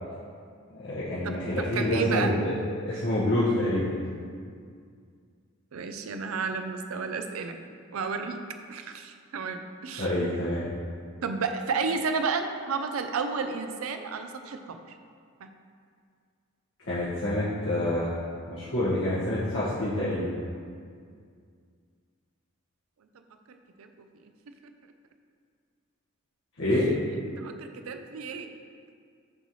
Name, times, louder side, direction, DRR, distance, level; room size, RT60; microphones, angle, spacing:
voice 1, 0.7-3.9 10.0-10.7 16.9-18.1 18.5-20.3 26.6-26.9, left 1 dB, 75° left, -12 dB, 1.5 m, -27 dB
voice 2, 1.2-2.3 2.9-3.0 5.7-7.6 7.9-8.4 8.7-10.1 11.2-14.8 15.4-15.5 23.1-23.2 23.5-24.1 27.4-28.5, right 5 dB, 90° right, 7 dB, 0.5 m, -32 dB
7.8 x 3.1 x 5.5 m, 2.1 s
head